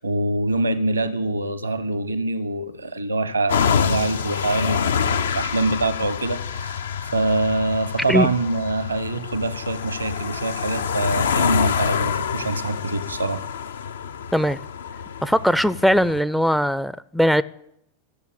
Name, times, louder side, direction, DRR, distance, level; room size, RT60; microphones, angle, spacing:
voice 1, 0.0-13.5, right 2 dB, 80° right, 0.9 m, -25 dB
sound 1, 3.5-16.2, left 7 dB, 65° left, 0.4 m, -26 dB
voice 2, 15.2-17.4, equal, ahead, 0.4 m, -19 dB
13.5 x 6.9 x 8.8 m
figure-of-eight pair, 90°, 0 cm